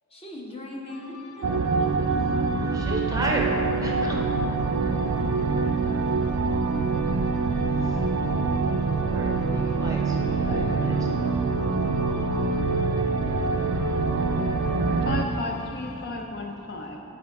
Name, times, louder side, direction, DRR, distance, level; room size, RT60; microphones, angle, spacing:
voice 1, 0.1-2.7, left 1 dB, 25° left, -2 dB, 0.8 m, -41 dB
sound 1, 0.9-16.1, left 2 dB, 85° left, 0.7 m, -47 dB
sound 2, 1.4-15.2, right 4 dB, 75° right, 0.4 m, -25 dB
voice 2, 2.6-4.1 9.0-11.5, right 1 dB, 15° right, -1 dB, 0.6 m, -33 dB
voice 3, 10.5-11.0 15.0-17.0, left 2 dB, 45° left, 2 dB, 0.4 m, -33 dB
10.0 x 4.7 x 3.5 m, 2.8 s
head